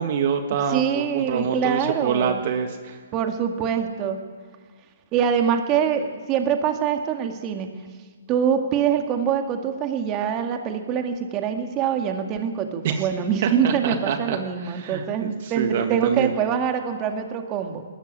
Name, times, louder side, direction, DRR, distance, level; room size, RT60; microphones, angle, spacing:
voice 1, 0.0-3.0 12.8-13.0 13.4-16.3, right 7 dB, 45° right, 6 dB, 1.7 m, -26 dB
voice 2, 0.7-2.4 3.1-4.2 5.1-7.7 8.3-17.8, right 8 dB, 25° right, 5 dB, 2.0 m, -24 dB
20.5 x 14.5 x 9.3 m, 1.5 s
hypercardioid pair, 140°, 0 cm